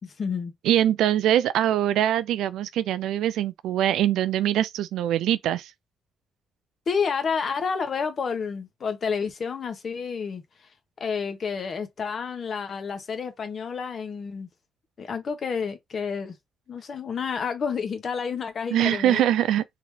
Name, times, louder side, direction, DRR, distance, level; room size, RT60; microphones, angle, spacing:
voice 1, 0.0-0.5 6.9-10.7 11.0-14.5 15.0-16.4 16.7-19.2, left 6 dB, 50° left, 1.2 m, -30 dB
voice 2, 0.6-5.7 18.7-19.6, right 11 dB, 85° right, 0.3 m, -23 dB
3.7 x 2.9 x 3.2 m
cardioid pair, 90°, 0 cm